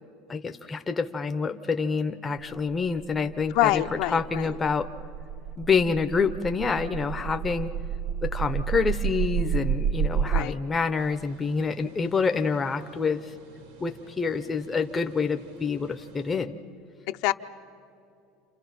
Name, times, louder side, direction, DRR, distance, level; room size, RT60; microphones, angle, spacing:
voice 1, 0.3-4.9 5.6-7.7 8.2-13.2 13.8-16.5, left 5 dB, 15° left, 7 dB, 0.6 m, -27 dB
sound 1, 2.4-10.5, right 8 dB, 50° right, 0.6 m, -30 dB
voice 2, 3.5-4.5 10.2-10.5 17.1-17.3, left 15 dB, 55° left, 8 dB, 0.6 m, -25 dB
sound 2, 10.9-16.4, right 2 dB, 80° right, 2.7 m, -51 dB
29.5 x 27.0 x 5.9 m, 2.6 s
cardioid pair, 165°, 0 cm